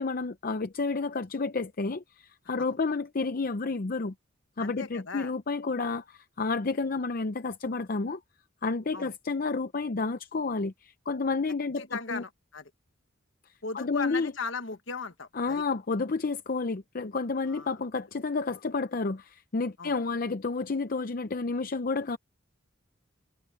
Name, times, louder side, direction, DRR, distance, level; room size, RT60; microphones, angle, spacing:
voice 1, 0.0-4.1 4.6-8.2 8.6-12.2 13.7-14.3 15.3-22.2, left 4 dB, 45° left, 0.6 m, -30 dB
voice 2, 4.6-5.3 8.9-9.1 11.8-12.7 13.6-15.6 17.5-17.8 19.8-19.9, left 4 dB, 60° left, 1.4 m, -37 dB
head